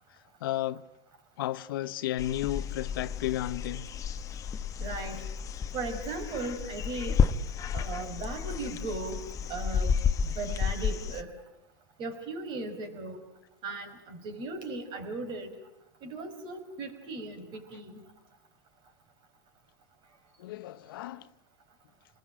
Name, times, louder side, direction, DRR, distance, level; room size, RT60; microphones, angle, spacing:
voice 1, 0.4-0.8 1.4-3.9 20.4-21.3, left 14 dB, 75° left, 1.1 m, -33 dB
sound 1, 2.2-11.2, left 6 dB, 30° left, 1.2 m, -31 dB
voice 2, 4.8-5.3 5.7-7.2 7.7-9.9 10.3-11.3 12.0-13.2 13.6-15.5 16.0-18.0, right 3 dB, 40° right, 5.4 m, -37 dB
27.5 x 20.5 x 9.0 m
supercardioid pair, 120°, 12 cm